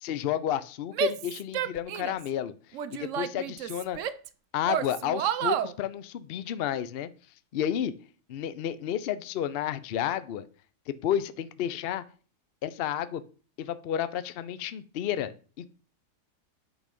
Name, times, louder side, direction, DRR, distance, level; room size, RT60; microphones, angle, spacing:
voice 1, 0.0-2.5 2.9-4.0 4.5-7.1 7.5-7.9 8.3-10.5 10.9-12.0 12.6-13.2 13.6-15.3 15.6-15.7, left 10 dB, 70° left, 0.5 m, -31 dB
Female speech woman speaking / Yell, 0.9-2.3 2.7-4.3 4.7-5.7, right 8 dB, 65° right, 0.8 m, -30 dB
8.8 x 4.1 x 5.2 m
omnidirectional pair, 1.7 m